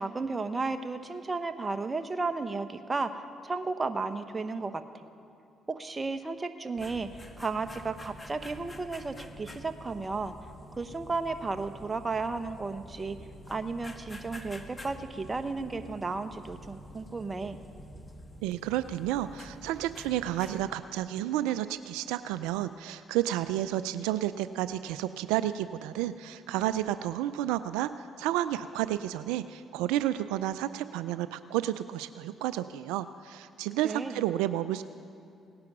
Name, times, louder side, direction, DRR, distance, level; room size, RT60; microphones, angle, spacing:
voice 1, 0.0-5.0 5.7-10.3 10.7-13.2 13.5-17.6 33.8-34.2, right 3 dB, 30° right, 9 dB, 1.1 m, -34 dB
sound 1, 6.8-20.7, equal, 25° left, 1.5 m, -48 dB
voice 2, 18.4-34.8, right 13 dB, 85° right, 13 dB, 0.3 m, -31 dB
18.0 x 10.5 x 6.1 m, 2.6 s
supercardioid pair, 60°, 0 cm